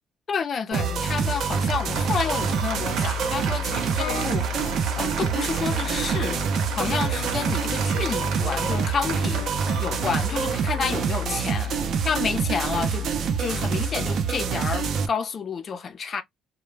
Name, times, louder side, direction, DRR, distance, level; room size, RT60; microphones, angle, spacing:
voice 1, 0.3-4.5 4.9-6.4 6.8-11.7 12.0-13.1 13.4-16.2, left 6 dB, 35° left, 0.4 m, -30 dB
sound 1, 0.7-15.1, right 5 dB, 50° right, 0.4 m, -26 dB
Applause, 0.7-12.6, right 5 dB, 70° right, 0.8 m, -35 dB
sound 2, 0.9-11.4 11.7-13.1, left 6 dB, 80° left, 0.8 m, -40 dB
2.1 x 2.0 x 3.1 m
cardioid pair, 155°, 0 cm